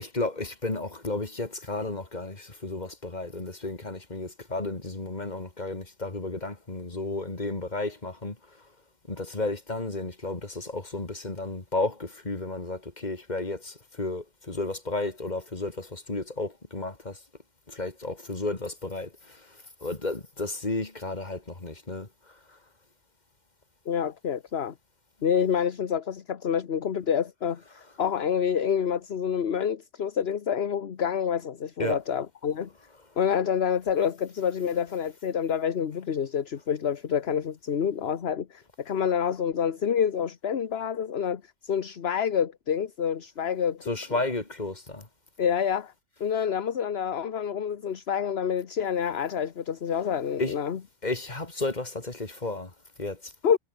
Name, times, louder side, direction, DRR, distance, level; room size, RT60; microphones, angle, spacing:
voice 1, 0.0-8.7 9.1-17.2 17.7-22.6 31.8-32.0 43.9-45.1 50.4-50.6 51.0-53.3, left 2 dB, 35° left, 2.9 m, -33 dB
voice 2, 23.9-24.7 25.2-27.6 28.0-32.7 33.2-43.8 45.4-45.9 46.2-50.8 53.4-53.6, left 8 dB, 60° left, 1.3 m, -27 dB
omnidirectional pair, 1.3 m